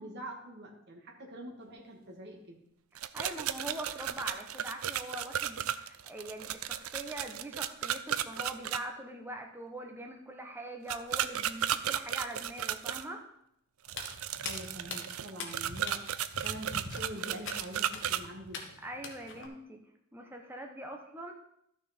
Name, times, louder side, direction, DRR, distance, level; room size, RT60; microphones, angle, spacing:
voice 1, 0.0-2.6 14.4-18.8, right 1 dB, 55° right, 0 dB, 2.1 m, -45 dB
sound 1, 3.0-8.8 10.9-13.0 13.9-18.2, right 10 dB, 75° right, 0.5 m, -34 dB
voice 2, 3.1-13.2 18.8-19.8 20.1-21.3, right 1 dB, 10° right, 2 dB, 1.0 m, -42 dB
Walk footsteps, 13.9-19.5, left 4 dB, 60° left, 1.5 m, -44 dB
13.0 x 6.4 x 4.4 m, 0.76 s
head